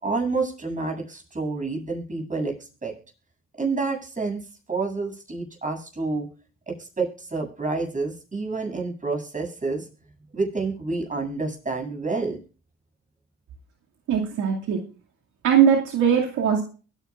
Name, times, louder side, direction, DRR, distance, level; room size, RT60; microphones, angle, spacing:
voice 1, 0.0-2.5 2.8-2.9 3.6-6.3 6.7-9.9 10.3-12.4, right 3 dB, 25° right, 1 dB, 7.9 m, -28 dB
voice 2, 14.1-14.8 15.4-16.6, right 8 dB, 75° right, 0 dB, 2.4 m, -20 dB
23.0 x 9.9 x 2.5 m, 0.36 s
cardioid pair, 90°, 30 cm